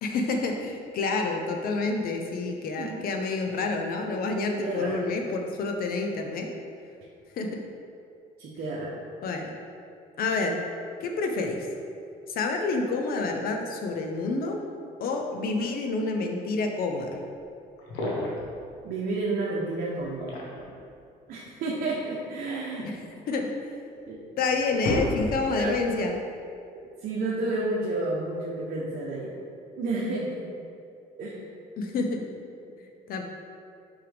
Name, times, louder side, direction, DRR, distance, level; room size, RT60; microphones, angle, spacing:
voice 1, 0.0-6.5 7.3-7.5 9.2-9.5 10.2-10.6 11.0-11.7 12.3-14.6 15.0-17.2 22.8-22.9 23.3-23.5 24.4-26.2 31.8-32.2 33.1-33.2, left 3 dB, 60° left, 3 dB, 0.8 m, -28 dB
voice 2, 4.6-5.0 8.4-8.9 18.8-20.4 21.3-22.9 24.1-24.2 25.5-25.7 27.0-29.3 29.8-30.5 31.2-31.4, right 2 dB, 65° right, -5 dB, 1.1 m, -30 dB
sound 1, 17.3-17.4 17.8-18.5 20.0-20.8 22.1-23.5 24.1-24.2 24.5-25.6, left 1 dB, 85° left, 1.3 m, -32 dB
5.8 x 5.6 x 3.5 m, 2.5 s
cardioid pair, 110°, 17 cm